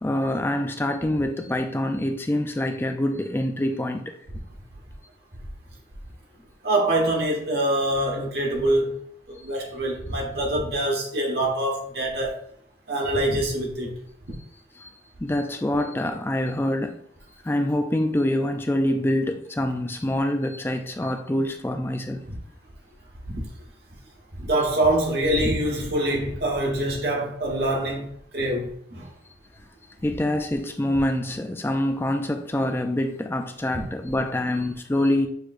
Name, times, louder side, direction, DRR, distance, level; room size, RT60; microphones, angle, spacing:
voice 1, 0.0-4.2 14.8-14.9 15.2-17.0 17.4-22.2 30.0-35.3, left 1 dB, 10° left, 0.3 m, -25 dB
voice 2, 6.6-9.0 9.3-12.4 12.9-14.0 22.3-22.4 23.3-23.4 24.4-29.1 33.7-33.8, right 1 dB, 60° right, 1.3 m, -25 dB
6.6 x 3.0 x 2.5 m
head